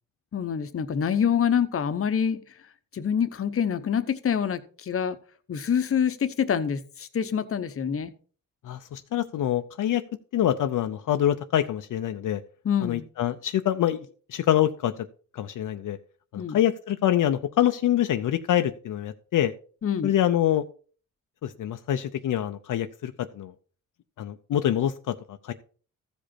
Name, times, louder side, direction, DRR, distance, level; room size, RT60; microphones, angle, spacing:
voice 1, 0.3-2.4 2.9-5.2 5.5-8.1 12.6-13.1 16.4-16.6 19.8-20.1, left 7 dB, 40° left, 10 dB, 0.8 m, -26 dB
voice 2, 8.6-10.0 10.3-12.4 12.8-14.9 15.3-16.0 16.3-19.5 20.0-20.6 21.4-23.5 24.2-25.5, left 11 dB, 70° left, 7 dB, 0.6 m, -25 dB
14.5 x 5.1 x 4.2 m, 0.42 s
cardioid pair, 105°, 33 cm